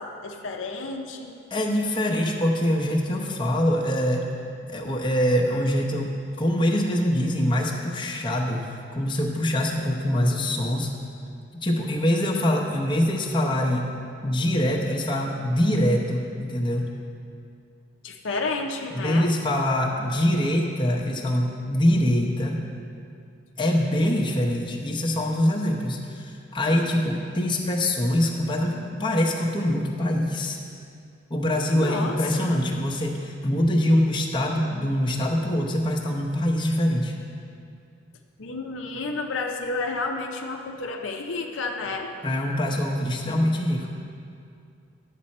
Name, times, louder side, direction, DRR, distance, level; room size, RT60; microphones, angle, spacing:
voice 1, 0.0-1.3 18.0-19.3 31.7-32.5 38.4-42.1, left 3 dB, 65° left, 2 dB, 0.6 m, -31 dB
voice 2, 1.5-4.3 4.7-10.9 11.6-13.9 14.2-16.9 18.9-22.6 23.6-30.6 31.3-37.2 42.2-43.9, left 1 dB, 25° left, -1 dB, 0.8 m, -24 dB
10.5 x 7.5 x 4.3 m, 2.4 s
head